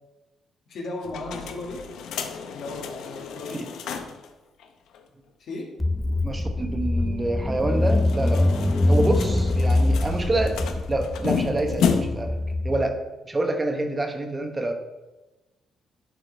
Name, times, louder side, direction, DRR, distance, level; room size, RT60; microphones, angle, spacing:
voice 1, 0.7-1.8 2.5-3.6 5.4-5.7 8.2-8.7 9.0-9.5 9.7-10.0, left 2 dB, 65° left, -1 dB, 1.8 m, -36 dB
sound 1, 1.0-4.3 4.6-4.7 4.9-5.0 7.8-12.4, left 6 dB, 80° left, 0.6 m, -31 dB
Car / Engine, 5.8-12.8, left 2 dB, 15° left, 0.4 m, -24 dB
voice 2, 6.2-8.4 8.9-12.4 12.6-14.7, right 2 dB, 25° right, 5 dB, 1.0 m, -27 dB
10.5 x 4.9 x 3.4 m, 1.1 s
cardioid pair, 90°, 0 cm